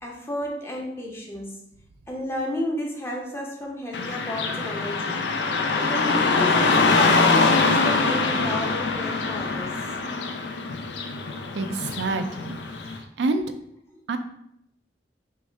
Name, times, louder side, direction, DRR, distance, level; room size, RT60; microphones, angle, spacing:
voice 1, 0.0-1.6 2.1-5.2 5.8-9.8 13.9-14.0, left 1 dB, 15° left, -1 dB, 0.7 m, -32 dB
Car passing by / Traffic noise roadway noise, 3.9-13.0, left 3 dB, 80° left, 0.5 m, -23 dB
voice 2, 11.5-12.6 13.2-13.4 14.1-14.2, right 3 dB, 80° right, 8 dB, 0.4 m, -26 dB
5.3 x 2.4 x 3.3 m, 0.74 s
head